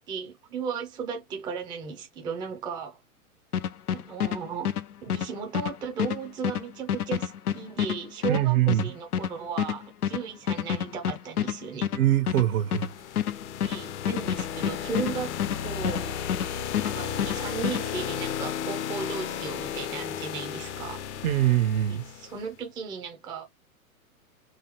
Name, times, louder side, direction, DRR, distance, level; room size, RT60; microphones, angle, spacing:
voice 1, 0.1-3.0 3.9-4.7 5.0-11.9 13.6-16.1 16.8-21.1 21.9-23.4, right 6 dB, 10° right, 0.5 m, -36 dB
sound 1, 3.5-16.5 16.7-17.8, left 9 dB, 90° left, 0.6 m, -29 dB
voice 2, 8.3-8.9 11.9-12.9 21.2-22.0, right 13 dB, 65° right, 1.0 m, -23 dB
sound 2, 12.6-22.4, left 9 dB, 50° left, 0.7 m, -34 dB
3.8 x 2.8 x 2.9 m
hypercardioid pair, 120°, 44 cm